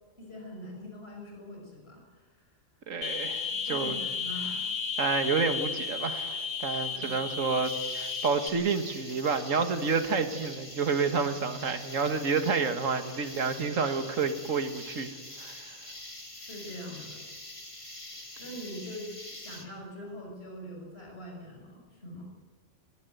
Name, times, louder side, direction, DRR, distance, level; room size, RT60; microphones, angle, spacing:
voice 1, 0.2-2.5 3.5-4.6 6.7-7.1 16.3-17.2 18.4-22.2, equal, 50° left, 0 dB, 6.2 m, -43 dB
voice 2, 2.9-4.0 5.0-15.1 15.4-15.7, right 5 dB, 75° right, 8 dB, 2.0 m, -29 dB
sound 1, 3.0-8.5, left 5 dB, 65° left, 2.5 m, -33 dB
sound 2, 7.6-19.7, left 1 dB, 25° left, 2.6 m, -45 dB
20.5 x 18.0 x 9.3 m, 1.4 s
omnidirectional pair, 1.4 m